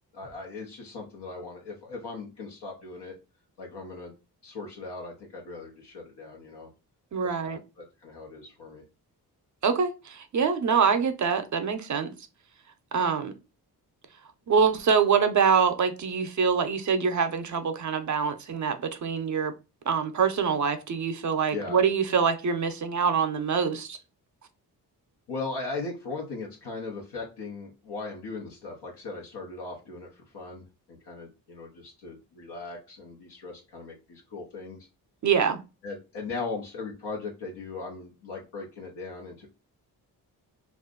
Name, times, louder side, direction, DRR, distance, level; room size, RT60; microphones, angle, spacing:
voice 1, 0.1-3.2 3.6-4.1 4.4-6.7 7.2-8.8 21.5-21.8 25.3-34.9 35.8-39.5, left 3 dB, 75° left, 0.9 m, -38 dB
voice 2, 7.1-7.6 9.6-12.1 12.9-13.3 14.5-19.5 19.9-24.0 35.2-35.6, right 6 dB, 45° right, 0.6 m, -25 dB
2.5 x 2.4 x 3.7 m
cardioid pair, 65°, 41 cm